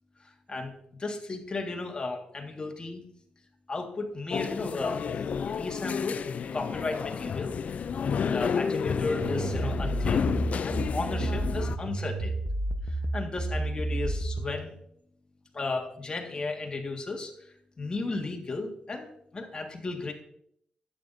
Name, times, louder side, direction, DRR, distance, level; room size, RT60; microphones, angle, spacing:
voice 1, 0.2-0.7 1.0-3.0 3.7-5.0 5.4-6.2 6.5-7.6 8.3-10.3 10.6-12.4 12.9-14.7 15.5-20.1, left 3 dB, 35° left, 2 dB, 1.8 m, -34 dB
sound 1, 4.3-11.8, left 6 dB, 60° left, 0.4 m, -30 dB
sound 2, 9.2-14.6, right 2 dB, 5° left, 1.0 m, -31 dB
12.5 x 8.9 x 2.7 m, 0.71 s
cardioid pair, 90°, 3 cm